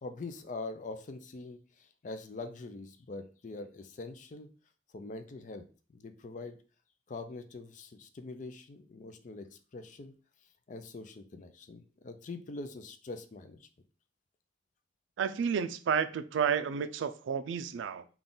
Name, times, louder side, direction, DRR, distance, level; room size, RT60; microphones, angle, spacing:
voice 1, 0.0-4.5 4.9-5.6 5.9-6.6 7.1-10.1 10.7-13.7, left 3 dB, 40° left, 0.4 m, -43 dB
voice 2, 15.2-18.1, right 7 dB, 90° right, 0.3 m, -31 dB
3.6 x 2.3 x 3.8 m
head